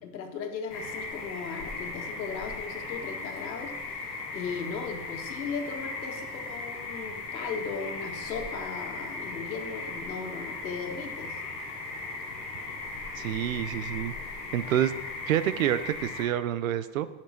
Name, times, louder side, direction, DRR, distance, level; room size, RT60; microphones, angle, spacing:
voice 1, 0.0-11.4, left 5 dB, 90° left, 4 dB, 1.8 m, -37 dB
sound 1, 0.7-16.3, left 3 dB, 10° left, 0.6 m, -38 dB
voice 2, 13.2-14.1 14.5-14.9 15.3-17.1, right 11 dB, 55° right, 14 dB, 0.6 m, -27 dB
15.5 x 6.0 x 4.4 m, 1.1 s
supercardioid pair, 175°, 50 cm